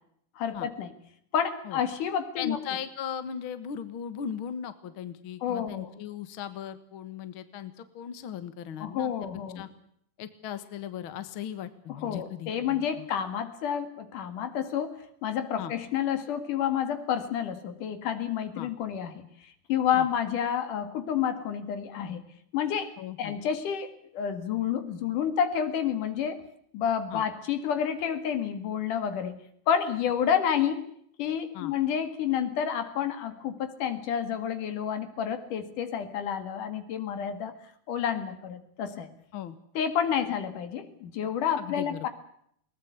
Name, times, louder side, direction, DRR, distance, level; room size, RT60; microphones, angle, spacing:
voice 1, 0.4-0.9 1.3-2.6 5.4-5.9 8.8-9.6 11.9-22.3 22.5-26.4 26.7-29.4 29.7-30.8 31.2-37.5 37.9-39.1 39.8-42.1, left 8 dB, 75° left, 10 dB, 3.5 m, -29 dB
voice 2, 2.4-9.1 9.6-9.7 10.2-13.1 15.6-15.7 18.6-18.7 20.0-20.1 23.0-23.4 27.1-27.2 31.5-31.7 39.3-39.6 41.6-42.1, left 9 dB, 50° left, 12 dB, 1.9 m, -38 dB
21.5 x 19.5 x 8.1 m, 0.68 s
omnidirectional pair, 3.7 m